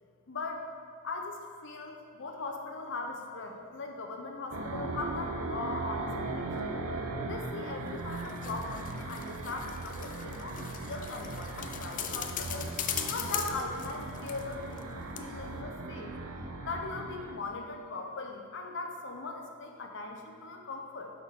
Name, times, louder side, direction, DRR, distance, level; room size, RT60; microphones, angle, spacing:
voice 1, 0.3-0.7 1.0-6.8 7.2-12.7 13.1-16.1 16.6-21.1, left 3 dB, 55° left, 2 dB, 0.9 m, -39 dB
sound 1, 4.5-17.3, right 2 dB, 80° right, 0.7 m, -38 dB
sound 2, 7.9-14.9 15.2-15.3, left 9 dB, 35° left, 0.5 m, -40 dB
10.5 x 6.2 x 3.7 m, 2.2 s
head